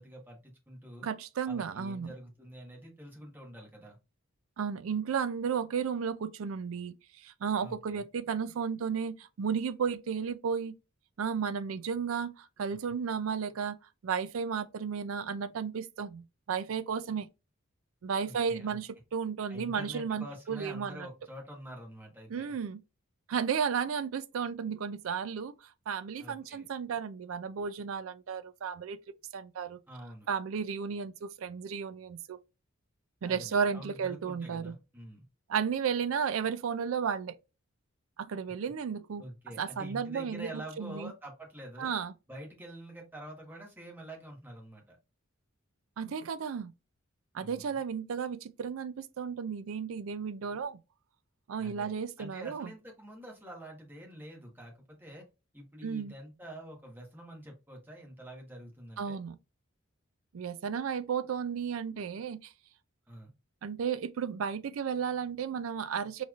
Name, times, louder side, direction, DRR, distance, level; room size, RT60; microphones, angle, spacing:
voice 1, 0.0-1.1 1.4-4.0 7.6-8.0 17.1-17.2 18.2-18.8 19.5-22.5 26.2-26.7 29.9-30.3 33.2-35.3 39.2-41.9 42.3-45.0 47.4-47.7 51.6-55.2 55.5-59.2 63.1-63.3, right 1 dB, 10° right, 1.2 m, -47 dB
voice 2, 1.0-2.1 4.6-6.9 7.2-10.7 11.2-13.8 14.0-17.3 18.0-21.1 22.3-22.8 23.3-25.5 25.9-29.0 29.3-29.8 30.3-32.4 33.2-34.7 35.5-37.4 38.2-39.2 39.6-40.5 40.8-41.1 41.8-42.1 46.0-46.7 47.3-50.8 51.5-52.7 55.8-56.1 59.0-59.3 60.3-62.4 63.6-66.2, right 6 dB, 75° right, 0.4 m, -33 dB
4.1 x 3.1 x 2.4 m
head